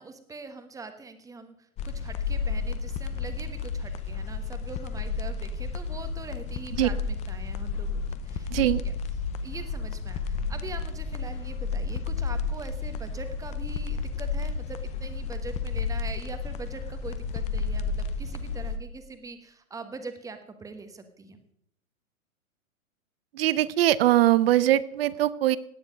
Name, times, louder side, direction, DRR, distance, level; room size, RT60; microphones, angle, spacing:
voice 1, 0.0-1.5 1.8-8.5 8.8-8.9 9.4-21.4, right 4 dB, 10° right, 9 dB, 1.2 m, -43 dB
sound 1, 1.8-18.8, left 5 dB, 15° left, 0.7 m, -32 dB
voice 2, 8.5-8.8 23.3-25.6, right 14 dB, 45° right, 18 dB, 0.7 m, -22 dB
17.0 x 10.0 x 5.2 m, 0.74 s
hypercardioid pair, 130°, 42 cm